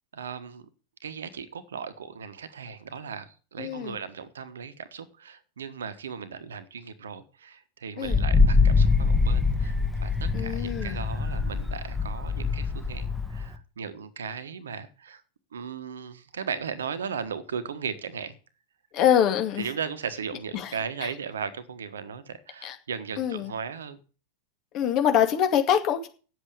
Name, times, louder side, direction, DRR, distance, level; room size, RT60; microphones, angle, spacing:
voice 1, 0.1-0.6 1.0-15.2 15.5-18.4 19.6-24.0, right 6 dB, 65° right, 12 dB, 1.4 m, -37 dB
voice 2, 3.6-4.0 8.0-8.2 10.3-11.0 18.9-19.7 20.5-20.7 22.6-22.8 23.2-23.5 24.7-26.1, left 9 dB, 35° left, 6 dB, 2.3 m, -24 dB
Wind, 8.0-13.6, left 4 dB, 5° left, 1.5 m, -24 dB
9.5 x 8.0 x 8.4 m, 0.36 s
figure-of-eight pair, 90°, 0 cm